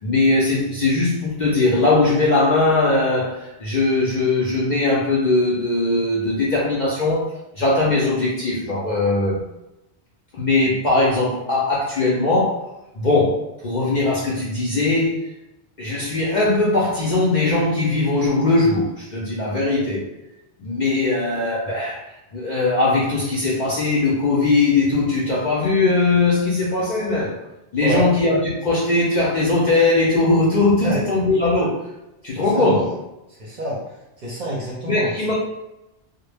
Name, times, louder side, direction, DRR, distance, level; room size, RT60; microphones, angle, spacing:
voice 1, 0.0-7.2 7.6-9.4 10.3-12.7 13.0-15.2 15.8-20.1 20.6-27.5 27.7-31.8 32.2-32.9 34.9-35.3, left 2 dB, 55° left, -5 dB, 0.5 m, -20 dB
voice 2, 32.4-32.9 33.4-33.8 34.2-35.3, right 1 dB, 50° right, -4 dB, 0.6 m, -27 dB
2.1 x 2.0 x 3.2 m, 0.92 s
omnidirectional pair, 1.1 m